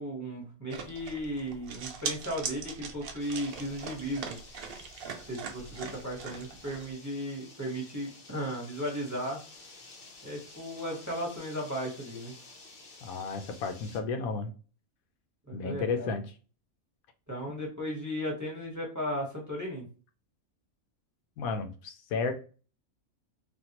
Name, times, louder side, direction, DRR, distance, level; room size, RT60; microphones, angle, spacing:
voice 1, 0.0-4.4 5.3-9.4 10.2-12.3 15.5-16.1 17.3-19.9, equal, 15° right, -2 dB, 0.9 m, -35 dB
sound 1, 0.7-6.9, right 5 dB, 60° right, 0.6 m, -41 dB
sound 2, 3.2-14.0, left 3 dB, 55° left, 0.7 m, -52 dB
voice 2, 13.0-14.5 15.5-16.2 21.4-22.3, left 4 dB, 80° left, 7 dB, 1.0 m, -32 dB
3.5 x 2.3 x 2.8 m, 0.36 s
omnidirectional pair, 1.5 m